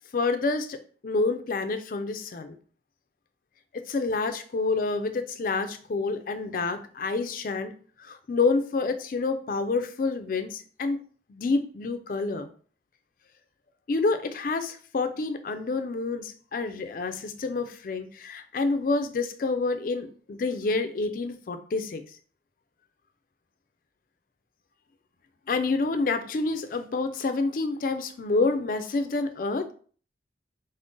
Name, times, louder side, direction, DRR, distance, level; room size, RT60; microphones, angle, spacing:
voice 1, 0.1-2.6 3.7-7.7 8.0-11.0 11.3-12.5 13.9-22.0 25.5-29.7, left 3 dB, 50° left, 9 dB, 0.4 m, -28 dB
3.6 x 2.1 x 3.8 m, 0.44 s
head